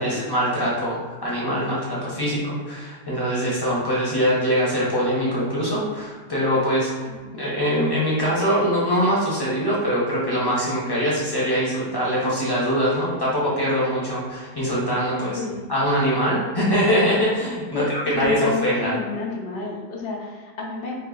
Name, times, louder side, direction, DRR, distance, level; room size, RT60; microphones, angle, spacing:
voice 1, 0.0-15.4 15.7-18.9, equal, 25° left, -6 dB, 0.5 m, -23 dB
voice 2, 15.2-15.6 17.7-21.0, left 3 dB, 75° left, -1 dB, 0.5 m, -30 dB
3.0 x 2.7 x 3.8 m, 1.4 s
omnidirectional pair, 1.7 m